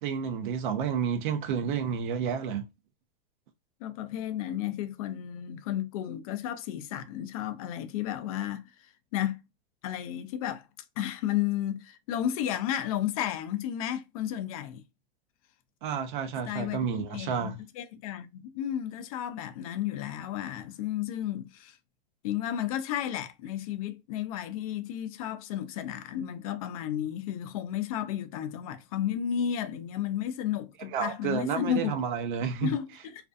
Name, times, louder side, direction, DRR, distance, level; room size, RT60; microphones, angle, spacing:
voice 1, 0.0-2.6 15.8-17.6 30.9-32.7, right 7 dB, 55° right, 0.7 m, -30 dB
voice 2, 3.8-9.4 9.8-10.7 11.0-14.8 16.5-21.8 22.2-31.9 32.6-32.9, left 11 dB, 40° left, 0.4 m, -33 dB
2.4 x 2.2 x 2.5 m
hypercardioid pair, 145°, 29 cm